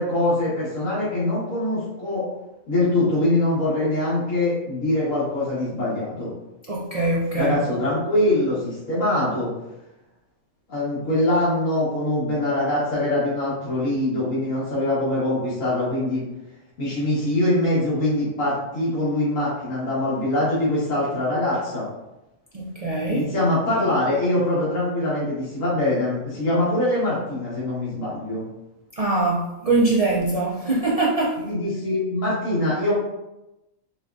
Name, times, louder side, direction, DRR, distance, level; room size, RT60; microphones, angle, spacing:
voice 1, 0.0-2.3 2.7-6.3 7.3-9.5 10.7-16.2 16.8-21.9 23.1-28.5 31.4-32.9, left 1 dB, 85° left, -10 dB, 1.8 m, -23 dB
voice 2, 6.7-7.6 22.5-23.3 29.0-31.4, right 2 dB, 60° right, -5 dB, 0.3 m, -22 dB
6.0 x 2.4 x 2.5 m, 0.95 s
omnidirectional pair, 1.3 m